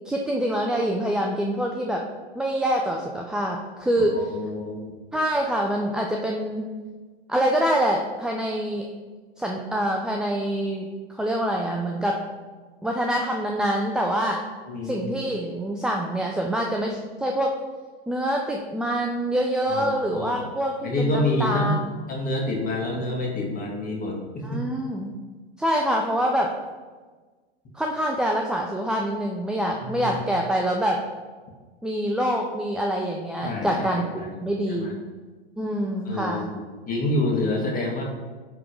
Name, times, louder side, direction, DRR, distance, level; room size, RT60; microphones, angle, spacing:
voice 1, 0.1-2.0 2.4-4.2 5.1-6.7 7.3-8.9 9.4-10.9 11.2-12.2 12.8-14.4 14.8-17.5 18.1-21.8 24.4-25.1 25.6-26.5 27.7-31.0 31.8-34.0 34.4-35.0 35.6-36.5, equal, ahead, 1 dB, 0.4 m, -25 dB
voice 2, 4.0-4.9 14.7-15.1 19.7-20.4 20.8-21.8 22.1-24.6 29.8-30.2 33.4-34.3 34.7-34.9 36.1-36.6 36.9-38.0, left 1 dB, 25° left, -1 dB, 1.8 m, -27 dB
9.8 x 3.7 x 5.2 m, 1.4 s
hypercardioid pair, 115°, 32 cm